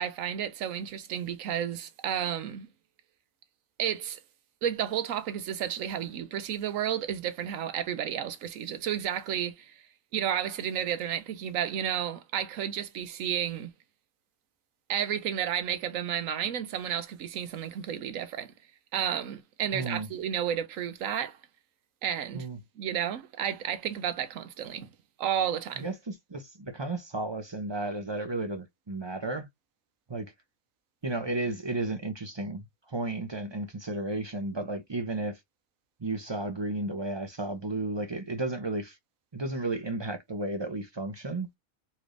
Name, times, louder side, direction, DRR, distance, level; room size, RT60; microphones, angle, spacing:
voice 1, 0.0-2.7 3.8-4.2 4.6-9.7 10.1-13.7 14.9-18.5 18.9-21.4 22.0-22.5 22.8-24.9 25.2-25.9, right 9 dB, 75° right, 1.1 m, -32 dB
voice 2, 19.7-20.1 22.3-22.6 25.8-29.5 30.1-30.3 31.0-35.4 36.0-39.0 39.3-41.5, right 2 dB, 30° right, 0.5 m, -33 dB
4.2 x 3.3 x 2.5 m
omnidirectional pair, 1.4 m